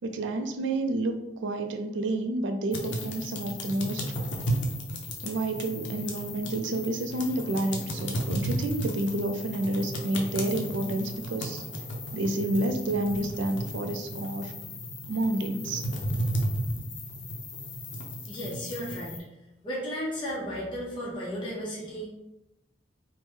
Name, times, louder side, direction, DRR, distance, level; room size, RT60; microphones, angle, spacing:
voice 1, 0.0-1.1 1.4-4.0 5.2-11.6 12.1-14.5 15.1-15.8, right 2 dB, 80° right, 5 dB, 0.4 m, -29 dB
sound 1, 2.7-19.2, equal, 85° left, 0.5 m, -34 dB
voice 2, 18.2-19.2 19.6-22.1, equal, 25° left, -6 dB, 0.7 m, -34 dB
3.3 x 2.1 x 3.1 m, 0.91 s
head